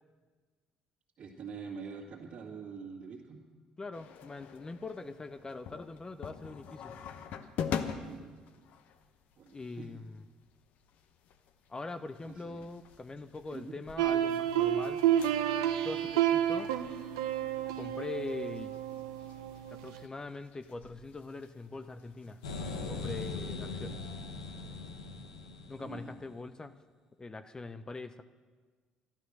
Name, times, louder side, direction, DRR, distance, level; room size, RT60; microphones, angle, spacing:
voice 1, 1.2-3.4 8.0-8.4 9.4-9.9 12.2-12.6 13.5-13.8 25.8-26.1, right 5 dB, 50° right, -4 dB, 2.2 m, -45 dB
voice 2, 3.8-6.9 9.5-10.2 11.7-15.0 15.7-16.7 17.8-18.7 19.7-22.4 22.9-24.1 25.7-26.7 27.2-28.2, left 3 dB, 25° left, 11 dB, 0.7 m, -42 dB
sound 1, 3.9-23.5, left 7 dB, 65° left, 0.9 m, -46 dB
sound 2, 14.0-20.0, right 11 dB, 80° right, 0.7 m, -30 dB
sound 3, 22.4-26.3, left 3 dB, 90° left, 1.0 m, -40 dB
12.5 x 12.0 x 6.6 m, 1.5 s
hypercardioid pair, 55°, 3 cm